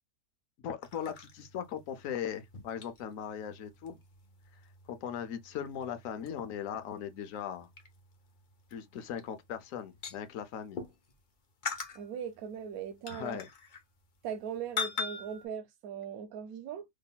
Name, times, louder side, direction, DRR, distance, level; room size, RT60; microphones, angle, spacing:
voice 1, 0.6-4.0 4.9-7.7 8.7-10.8 13.1-13.5, left 8 dB, 65° left, 0.9 m, -39 dB
sound 1, 0.8-11.2 11.6-14.5 14.8-15.4, left 5 dB, 45° left, 0.6 m, -43 dB
voice 2, 11.9-13.4 14.2-16.9, right 7 dB, 70° right, 0.9 m, -39 dB
3.7 x 3.3 x 2.2 m
omnidirectional pair, 1.9 m